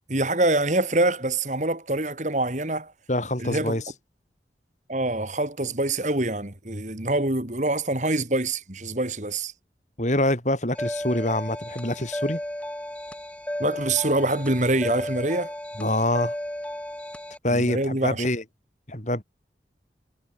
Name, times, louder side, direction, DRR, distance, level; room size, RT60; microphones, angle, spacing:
voice 1, 0.1-2.9 3.4-3.8 4.9-9.5 13.6-15.5 17.5-18.3, right 2 dB, 40° right, 2.6 m, -25 dB
voice 2, 3.1-3.8 10.0-12.4 15.8-16.3 17.4-18.4 18.9-19.2, left 1 dB, 40° left, 4.6 m, -25 dB
sound 1, 10.7-17.4, left 1 dB, 5° left, 0.9 m, -34 dB
head